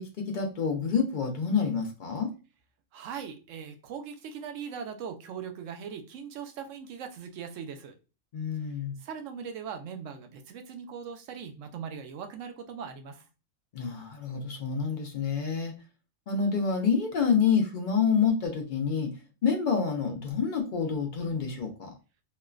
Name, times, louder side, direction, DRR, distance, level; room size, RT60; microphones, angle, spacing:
voice 1, 0.0-2.3 8.3-9.0 13.7-15.7 16.3-19.1 19.4-21.9, left 6 dB, 55° left, 3 dB, 0.5 m, -28 dB
voice 2, 2.9-7.9 9.0-13.3, right 7 dB, 70° right, 6 dB, 0.9 m, -40 dB
3.0 x 2.0 x 2.3 m, 0.32 s
omnidirectional pair, 1.4 m